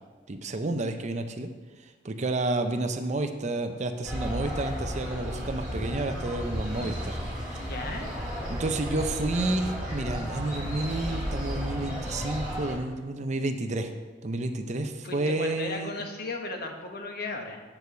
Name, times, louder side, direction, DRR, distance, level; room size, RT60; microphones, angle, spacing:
voice 1, 0.3-1.5 2.0-7.2 8.5-13.9 14.2-16.1, right 2 dB, 40° right, 7 dB, 0.6 m, -30 dB
sound 1, 4.1-12.8, equal, 5° right, 3.3 m, -33 dB
voice 2, 7.6-8.1 15.0-17.6, left 2 dB, 55° left, 3 dB, 1.1 m, -36 dB
8.8 x 4.7 x 6.8 m, 1.3 s
head